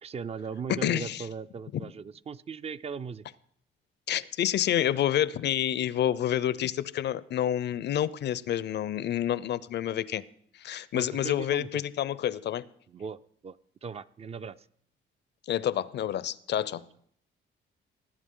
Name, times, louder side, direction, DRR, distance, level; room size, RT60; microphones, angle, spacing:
voice 1, 0.0-3.2 10.9-11.8 12.9-13.2 13.4-13.6 13.8-14.7 16.8-16.9, right 6 dB, 30° right, 15 dB, 0.4 m, -38 dB
voice 2, 0.7-1.2 4.1-10.2 10.6-12.6 15.5-16.9, left 11 dB, 60° left, 19 dB, 0.5 m, -28 dB
19.0 x 8.3 x 3.8 m, 0.67 s
cardioid pair, 90°, 20 cm